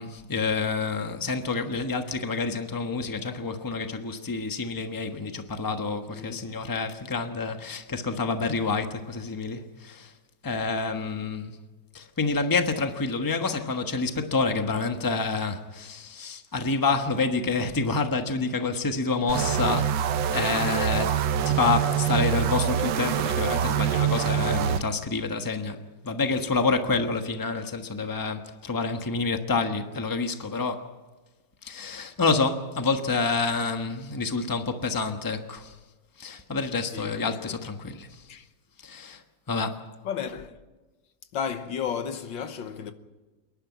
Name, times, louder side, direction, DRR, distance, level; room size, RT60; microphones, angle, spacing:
voice 1, 0.0-10.1 10.4-11.6 11.9-21.2 21.4-25.8 26.0-30.9 31.6-35.7 36.2-38.2 38.8-39.2 39.5-39.8, left 4 dB, 15° left, 1.1 m, -28 dB
voice 2, 6.1-6.6 36.9-37.6 38.3-38.5 40.0-40.6 41.3-42.9, left 7 dB, 85° left, 1.9 m, -33 dB
sound 1, 19.3-24.8, right 9 dB, 85° right, 1.6 m, -25 dB
28.0 x 11.5 x 9.3 m
omnidirectional pair, 2.0 m